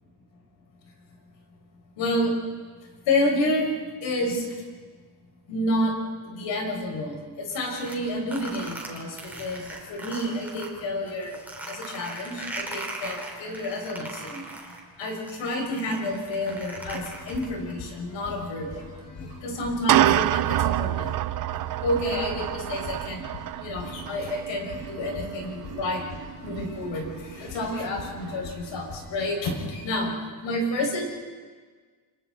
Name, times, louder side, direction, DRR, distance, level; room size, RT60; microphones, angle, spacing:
voice 1, 2.0-2.3 3.1-3.7 4.0-4.5 5.5-6.0 6.2-11.4 11.7-14.4 15.0-18.8 19.4-21.1 21.8-23.2 23.6-30.1 30.4-31.0, left 1 dB, 85° left, 0 dB, 5.9 m, -29 dB
sound 1, 7.5-10.7 11.1-17.7, right 1 dB, 5° right, 3.8 m, -39 dB
sound 2, 16.5-16.6 16.9-17.1 18.4-18.5 19.5-28.7, right 13 dB, 50° right, 0.5 m, -28 dB
sound 3, 16.7-29.3, left 5 dB, 60° left, 2.6 m, -44 dB
30.0 x 25.5 x 4.1 m, 1.5 s
cardioid pair, 160°, 44 cm